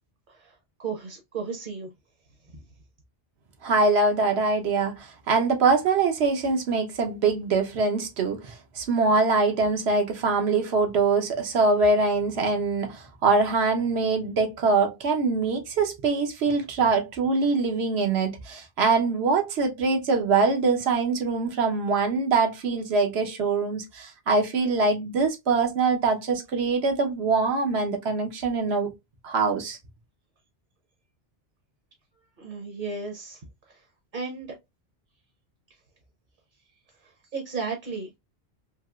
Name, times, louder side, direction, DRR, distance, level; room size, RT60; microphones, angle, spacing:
voice 1, 0.3-1.9 32.4-33.4 33.7-33.8 34.1-34.5 37.3-38.1, right 4 dB, 50° right, 0.9 m, -34 dB
voice 2, 3.6-28.9 29.2-29.8, right 4 dB, 75° right, 1.0 m, -23 dB
3.0 x 2.8 x 2.3 m
omnidirectional pair, 1.1 m